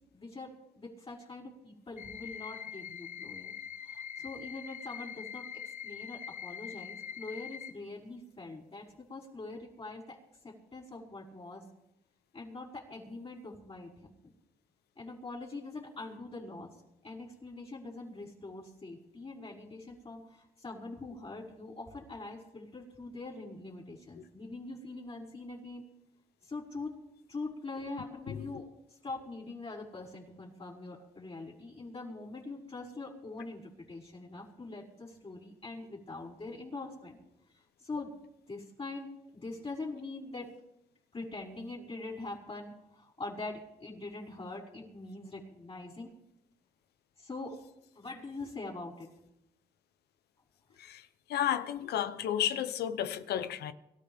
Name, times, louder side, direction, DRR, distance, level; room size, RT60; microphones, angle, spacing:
voice 1, 0.1-3.5 3.8-10.2 10.4-11.7 12.3-14.1 15.0-16.7 17.0-25.8 26.4-27.0 27.3-37.2 37.8-38.1 38.5-40.5 41.1-46.1 47.2-47.6 47.9-49.1, left 3 dB, 35° left, 5.4 m, -43 dB
sound 1, 2.0-7.7, left 8 dB, 50° left, 1.0 m, -43 dB
voice 2, 28.3-28.6 50.8-53.7, left 10 dB, 90° left, 0.9 m, -33 dB
24.0 x 13.5 x 3.6 m
cardioid pair, 70°, 16 cm